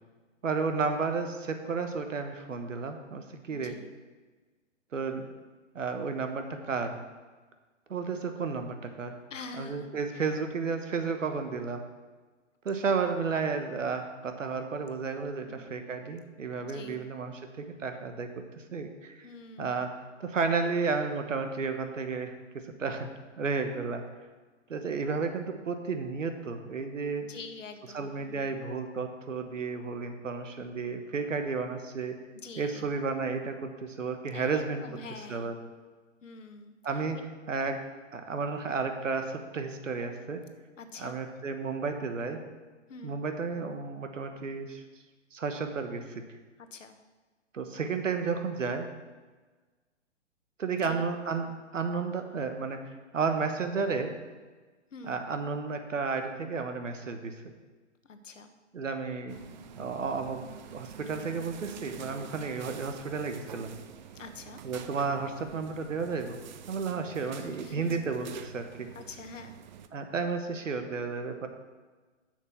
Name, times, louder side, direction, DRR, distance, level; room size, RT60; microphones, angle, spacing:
voice 1, 0.4-3.8 4.9-5.3 5.7-7.0 7.9-9.2 9.6-11.8 12.6-18.4 18.7-19.3 19.6-19.9 20.2-23.1 23.4-24.0 24.7-27.3 27.9-32.2 32.6-34.8 35.3-35.5 36.8-37.8 38.1-40.4 41.0-42.4 43.0-44.8 45.3-46.2 47.5-48.9 50.6-52.8 53.1-54.1 55.1-57.3 58.7-59.4 59.8-60.4 60.7-63.7 64.6-66.4 66.7-68.9 69.9-71.5, right 4 dB, 85° right, 7 dB, 1.4 m, -32 dB
voice 2, 3.5-3.9 9.3-10.3 15.4-15.6 16.6-17.1 19.2-19.8 27.2-28.5 32.3-32.9 34.3-35.6 36.2-36.7 37.1-37.2 40.8-41.2 42.9-43.3 46.6-47.0 50.8-51.0 54.9-55.2 58.0-58.5 64.1-64.6 67.3-68.1 68.9-69.6, left 3 dB, 80° left, 7 dB, 1.3 m, -46 dB
sound 1, 59.3-69.9, right 8 dB, 40° right, 0.6 m, -47 dB
7.5 x 6.6 x 7.2 m, 1.3 s
hypercardioid pair, 135°, 37 cm